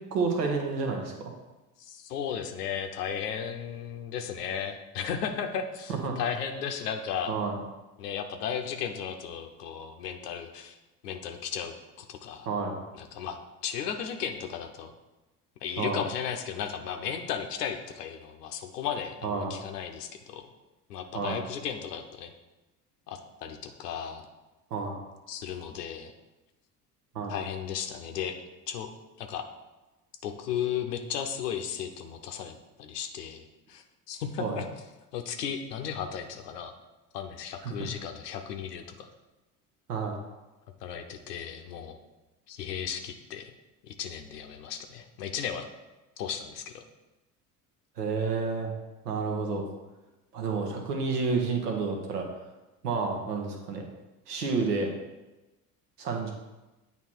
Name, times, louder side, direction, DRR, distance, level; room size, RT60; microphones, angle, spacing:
voice 1, 0.1-1.3 5.9-6.2 7.3-7.6 12.5-12.8 15.8-16.0 19.2-19.5 21.1-21.4 24.7-24.9 27.1-27.3 34.4-34.6 37.6-37.9 39.9-40.1 48.0-48.7 49.0-49.6 50.3-52.3 52.8-53.8 54.3-54.9 56.0-56.3, right 4 dB, 80° right, 2 dB, 1.1 m, -30 dB
voice 2, 1.8-7.3 8.0-10.8 11.0-12.5 12.9-14.9 15.6-20.5 20.9-22.3 23.1-24.3 25.3-26.1 27.3-28.4 28.7-28.9 29.2-29.4 30.2-34.7 35.1-36.7 37.1-39.1 40.8-42.0 42.5-43.5 43.8-45.6 46.2-46.8, left 8 dB, 80° left, 5 dB, 0.7 m, -35 dB
8.1 x 2.9 x 4.5 m, 1.1 s
hypercardioid pair, 65°, 47 cm